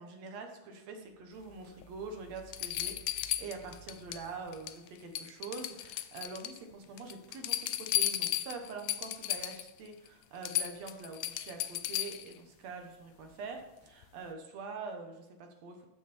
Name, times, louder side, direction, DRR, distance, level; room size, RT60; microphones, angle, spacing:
voice 1, 0.0-15.8, right 4 dB, 60° right, 4 dB, 2.2 m, -45 dB
sound 1, 1.0-4.8, right 4 dB, 40° right, 2.1 m, -57 dB
sound 2, 1.8-1.9 2.5-4.2 4.5-4.9 5.2-6.6 7.0-9.7 10.1-10.2 10.4-12.3 14.0-14.1, left 13 dB, 80° left, 1.6 m, -35 dB
14.0 x 6.2 x 4.4 m, 0.96 s
omnidirectional pair, 3.7 m